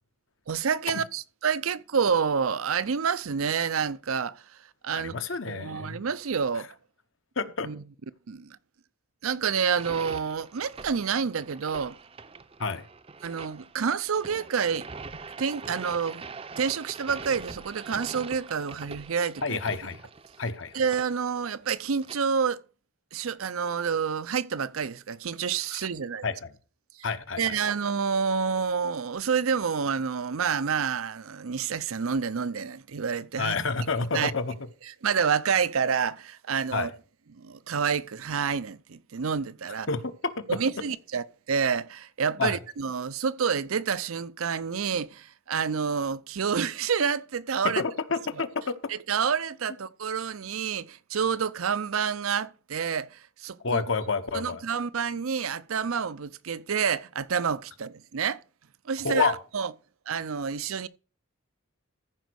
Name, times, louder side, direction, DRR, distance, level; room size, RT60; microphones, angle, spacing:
voice 1, 0.5-4.4 4.8-5.1 5.5-6.7 7.6-7.8 8.3-8.5 9.2-12.0 13.2-14.9 15.4-16.2 16.6-19.6 20.7-22.6 23.1-26.2 27.4-33.6 34.1-34.3 35.0-36.9 37.3-39.9 40.5-47.8 48.4-48.5 48.9-53.8 54.3-58.4 58.9-59.7 60.1-60.9, right 6 dB, 80° right, 0.6 m, -28 dB
voice 2, 4.9-6.0 7.4-7.7 12.6-12.8 19.4-20.0 20.4-20.8 25.7-25.8 26.2-26.5 27.0-27.6 33.4-34.5 36.7-36.9 39.9-40.6 42.4-42.6 47.6-48.9 53.6-54.6 59.0-59.4, left 4 dB, 65° left, 1.1 m, -29 dB
sound 1, 9.6-22.2, right 4 dB, 25° right, 0.6 m, -43 dB
14.5 x 5.2 x 6.3 m
head